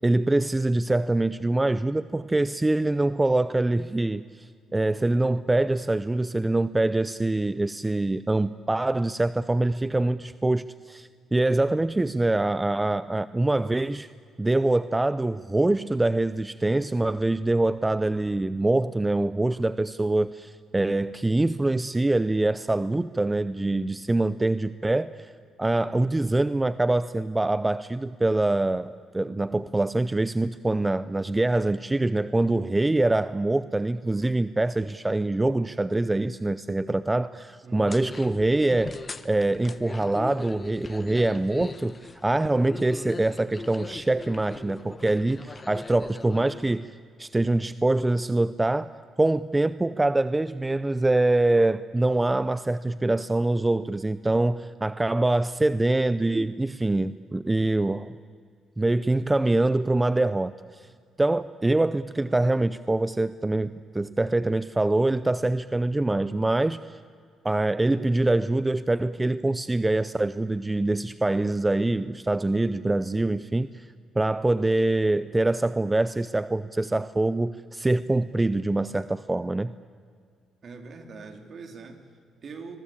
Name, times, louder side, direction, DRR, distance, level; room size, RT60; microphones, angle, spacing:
voice 1, 0.0-14.1 14.4-25.3 25.6-39.0 39.2-46.9 47.2-48.9 49.2-58.1 58.8-60.9 61.2-67.0 67.4-73.9 74.2-79.7, right 2 dB, 15° right, 15 dB, 0.6 m, -24 dB
voice 2, 37.6-38.2 80.6-82.8, right 4 dB, 50° right, 5 dB, 3.5 m, -43 dB
sound 1, 37.9-46.8, left 4 dB, 30° left, 1.1 m, -40 dB
26.0 x 22.0 x 8.7 m, 2.2 s
cardioid pair, 90°, 0 cm